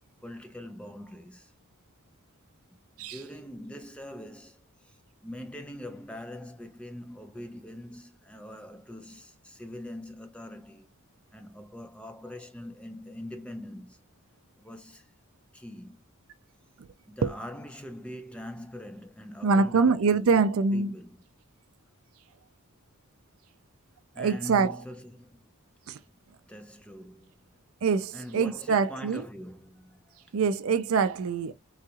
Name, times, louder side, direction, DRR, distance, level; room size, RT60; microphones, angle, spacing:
voice 1, 0.2-1.5 3.0-10.9 11.3-14.0 14.6-15.1 15.5-16.0 17.1-21.2 24.1-25.4 26.4-27.3 28.1-30.2, left 1 dB, 5° left, 0.4 m, -43 dB
voice 2, 19.4-20.9 24.2-24.8 25.9-26.0 27.8-29.3 30.3-31.5, right 5 dB, 70° right, 0.4 m, -24 dB
3.9 x 2.3 x 2.7 m
head